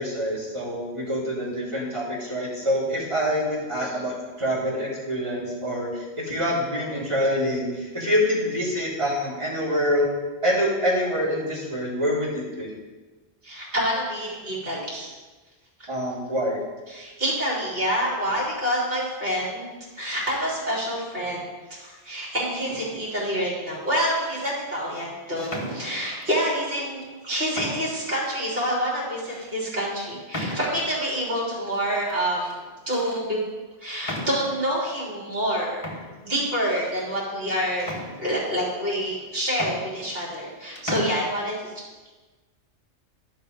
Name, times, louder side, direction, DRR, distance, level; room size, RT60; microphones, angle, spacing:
voice 1, 0.0-10.1 10.4-12.8 15.9-16.6, equal, 25° right, -8 dB, 3.4 m, -26 dB
voice 2, 13.4-15.1 16.9-32.6 32.9-33.4 33.8-37.9 38.2-41.7, equal, 55° right, -6 dB, 3.8 m, -27 dB
sound 1, 22.7-23.1 23.9-24.5 25.4-26.3 27.0-27.1 27.5-28.1 28.6-28.7 29.3-29.5 30.3-31.0 32.1-32.6 32.9-33.2 34.0-34.7 35.4-35.5 35.8-37.1 37.8-38.6 39.2-39.3 39.5-40.5 40.8-41.1, left 1 dB, 30° left, 1.5 m, -36 dB
12.0 x 5.9 x 5.4 m, 1.3 s
omnidirectional pair, 1.2 m